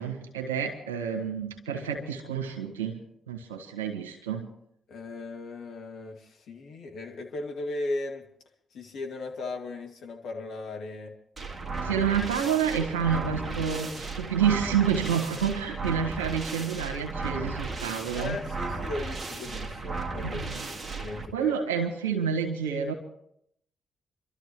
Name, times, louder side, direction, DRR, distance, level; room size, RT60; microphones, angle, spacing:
voice 1, 0.0-3.0 3.3-4.5 11.8-18.4 20.2-20.7 21.3-22.9, right 7 dB, 85° right, 3 dB, 1.6 m, -29 dB
voice 2, 4.9-8.2 8.7-11.1 18.1-20.6 21.0-21.6, left 2 dB, 65° left, 1 dB, 2.1 m, -37 dB
sound 1, 11.4-21.2, right 3 dB, 35° right, 1.9 m, -35 dB
28.0 x 13.0 x 3.0 m, 0.71 s
hypercardioid pair, 40°, 0 cm